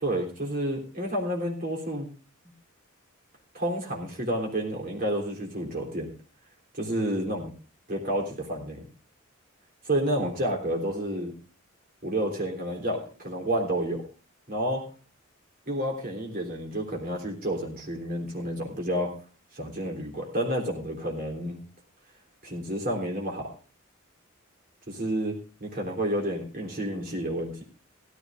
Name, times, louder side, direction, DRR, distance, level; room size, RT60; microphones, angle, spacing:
voice 1, 0.0-2.1 3.5-6.1 6.7-7.5 7.9-8.9 9.9-11.3 12.0-14.0 14.5-14.8 15.7-19.1 19.5-21.6 22.4-23.5 24.9-27.6, right 1 dB, 45° right, 0 dB, 3.5 m, -30 dB
16.5 x 14.0 x 2.6 m, 0.37 s
head